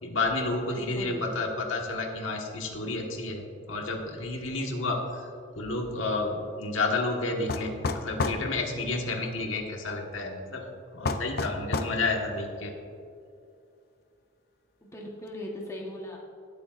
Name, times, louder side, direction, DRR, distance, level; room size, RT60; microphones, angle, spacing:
voice 1, 0.0-5.3 5.5-10.6 10.9-12.7, left 3 dB, 85° left, 1 dB, 1.5 m, -31 dB
voice 2, 0.7-1.3 14.8-16.2, left 1 dB, 15° left, -2 dB, 1.2 m, -38 dB
sound 1, 7.5-8.4 11.0-12.0, left 3 dB, 50° left, 0.6 m, -29 dB
18.0 x 8.4 x 2.5 m, 2.4 s
head